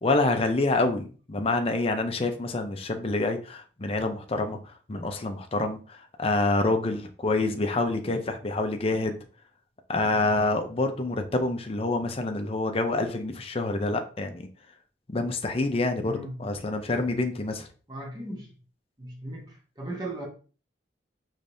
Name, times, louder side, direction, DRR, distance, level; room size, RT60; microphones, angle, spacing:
voice 1, 0.0-4.6 4.9-9.2 9.9-14.5 15.1-17.7, left 2 dB, 30° left, 0.6 m, -27 dB
voice 2, 16.0-16.5 17.9-18.5 19.0-20.3, right 1 dB, 20° right, 1.2 m, -37 dB
5.1 x 3.2 x 2.6 m
head